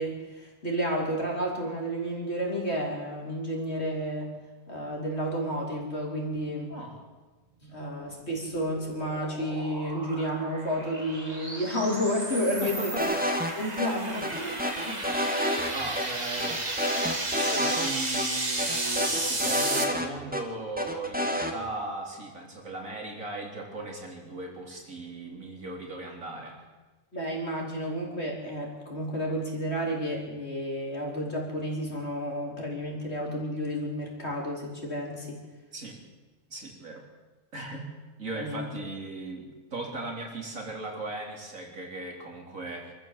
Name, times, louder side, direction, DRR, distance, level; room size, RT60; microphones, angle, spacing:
voice 1, 0.0-4.3 4.7-6.7 7.6-13.1 13.5-15.0 27.1-35.4 38.3-38.7, equal, 45° left, -1 dB, 4.6 m, -31 dB
voice 2, 6.7-7.0 12.6-13.1 15.7-16.6 17.3-26.6 35.7-36.0 36.5-37.0 37.5-37.9 38.2-42.9, right 2 dB, 60° right, 1 dB, 4.3 m, -38 dB
sound 1, 8.2-19.8, right 2 dB, 25° right, 2.2 m, -33 dB
sound 2, 13.0-13.5 13.8-13.9 14.2-15.7 16.0-16.1 16.4-17.9 18.1-18.2 18.6-20.4 20.8-21.5, equal, 5° right, 1.8 m, -29 dB
25.0 x 14.0 x 7.8 m, 1.2 s
omnidirectional pair, 1.6 m